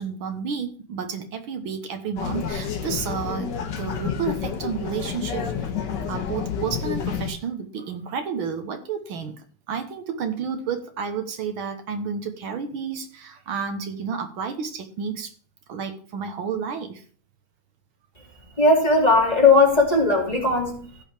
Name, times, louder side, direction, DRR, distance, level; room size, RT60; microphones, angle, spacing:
voice 1, 0.0-5.7 6.1-9.4 9.7-15.3 15.7-17.0, right 6 dB, 75° right, 6 dB, 1.9 m, -31 dB
sound 1, 2.2-7.3, left 7 dB, 60° left, 1.6 m, -29 dB
voice 2, 18.6-20.8, left 3 dB, 20° left, -2 dB, 2.6 m, -17 dB
16.0 x 5.6 x 3.4 m, 0.43 s
omnidirectional pair, 2.3 m